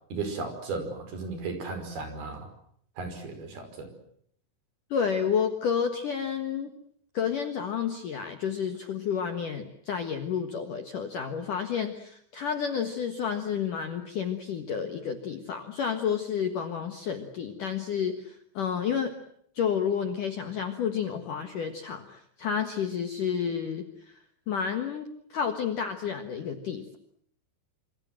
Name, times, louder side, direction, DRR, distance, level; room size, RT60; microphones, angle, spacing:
voice 1, 0.1-2.5 3.0-3.9, right 3 dB, 50° right, 7 dB, 6.8 m, -35 dB
voice 2, 4.9-6.7 7.1-19.1 19.6-24.2 24.5-27.0, left 7 dB, 60° left, 6 dB, 2.4 m, -30 dB
27.5 x 26.5 x 7.7 m, 0.68 s
omnidirectional pair, 5.8 m